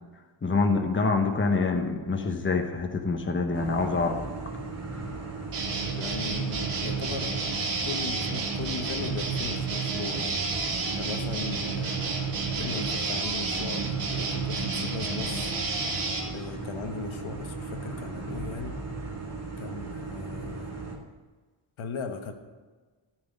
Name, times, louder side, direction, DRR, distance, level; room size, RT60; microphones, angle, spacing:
voice 1, 0.4-4.2, left 4 dB, 25° left, 3 dB, 1.2 m, -26 dB
sound 1, 3.5-21.0, right 3 dB, 30° right, 2.2 m, -37 dB
sound 2, 5.5-16.2, right 4 dB, 90° right, 2.7 m, -31 dB
voice 2, 5.9-7.4 7.8-12.2 12.6-15.9 16.3-18.8 19.6-20.8 21.8-22.3, left 5 dB, 70° left, 5 dB, 1.4 m, -38 dB
13.5 x 6.2 x 9.2 m, 1.4 s
wide cardioid pair, 170°, 49 cm